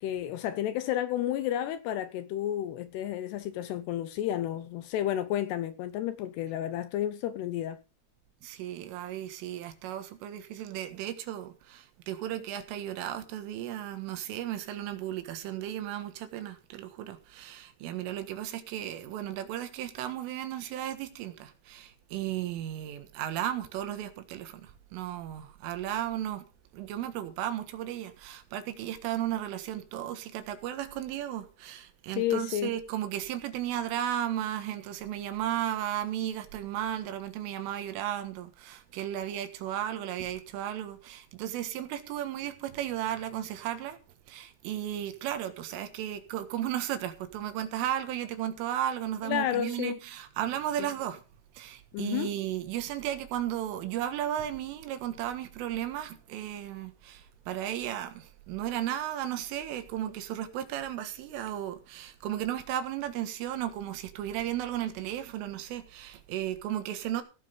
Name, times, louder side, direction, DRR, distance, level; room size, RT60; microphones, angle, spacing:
voice 1, 0.0-7.8 32.2-32.7 49.2-50.0 50.8-50.9 51.9-52.3, left 12 dB, 80° left, 2.5 m, -31 dB
voice 2, 8.4-26.5 26.7-44.0 44.3-51.2 51.6-67.2, right 11 dB, 85° right, 4.1 m, -34 dB
16.5 x 7.7 x 5.2 m
omnidirectional pair, 5.6 m